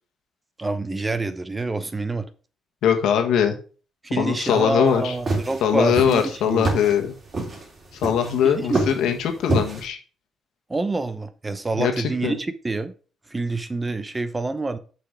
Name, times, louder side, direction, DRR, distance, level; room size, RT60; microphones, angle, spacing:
voice 1, 0.6-2.2 4.0-6.8 8.4-8.9 10.7-12.9 13.3-14.8, right 3 dB, 20° right, 11 dB, 0.9 m, -27 dB
voice 2, 2.8-3.5 4.2-5.1 5.6-7.1 8.0-10.0 11.8-12.3, left 8 dB, 85° left, 4 dB, 1.5 m, -21 dB
sound 1, 4.9-9.8, right 2 dB, 40° right, 3.2 m, -27 dB
6.7 x 6.0 x 4.8 m, 0.38 s
cardioid pair, 90°, 0 cm